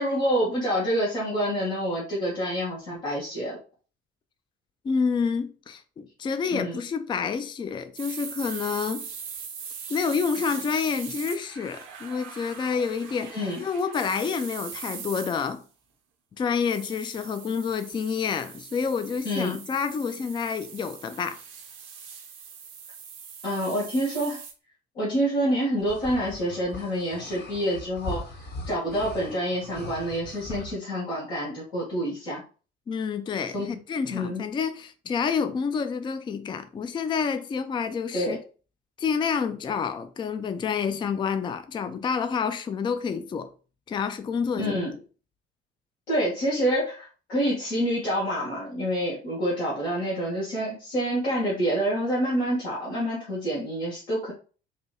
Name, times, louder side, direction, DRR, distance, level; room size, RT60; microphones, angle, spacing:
voice 1, 0.0-3.6 6.5-6.8 13.3-13.6 19.2-19.6 23.4-24.4 24.9-32.4 33.5-33.7 34.1-34.5 38.1-38.3 44.6-44.9 46.1-54.3, equal, 75° left, 1.4 m, -27 dB
voice 2, 4.8-9.1 9.9-15.6 16.4-21.4 32.9-38.4 39.0-43.5 43.9-44.8, left 6 dB, 15° left, 0.3 m, -28 dB
sound 1, 8.0-15.6 16.6-24.5, right 7 dB, 65° right, 0.8 m, -41 dB
sound 2, 25.8-30.7, left 2 dB, 30° left, 0.9 m, -40 dB
4.1 x 2.6 x 2.2 m
figure-of-eight pair, 50°, 32 cm